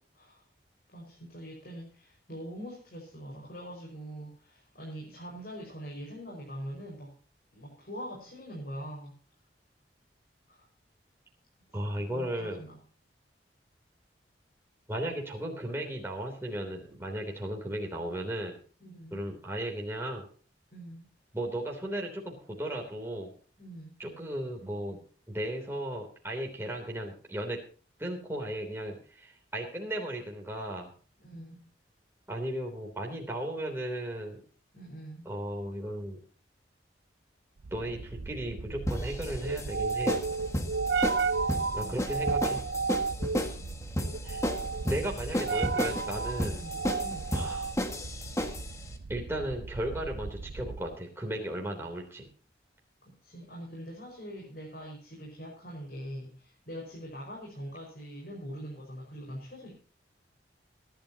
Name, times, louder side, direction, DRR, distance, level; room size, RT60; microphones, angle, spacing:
voice 1, 0.9-7.1 7.5-9.1 10.5-10.6 11.9-12.8 18.8-19.2 20.7-21.1 23.6-24.0 31.2-31.6 34.7-35.3 41.5-42.1 43.2-44.1 46.5-47.3 53.0-59.7, equal, 55° left, -2 dB, 5.4 m, -43 dB
voice 2, 11.7-12.6 14.9-18.6 19.1-20.2 21.3-23.3 24.0-25.0 25.3-27.6 28.0-30.9 32.3-34.4 35.2-36.2 37.7-40.2 41.7-42.6 44.2-44.4 44.8-46.6 47.3-47.7 49.1-52.3, right 1 dB, 15° right, 0 dB, 3.3 m, -35 dB
sound 1, 37.6-51.0, right 4 dB, 80° right, 0.6 m, -33 dB
sound 2, 38.9-48.8, equal, 15° left, 1.7 m, -33 dB
23.5 x 11.5 x 2.9 m, 0.41 s
head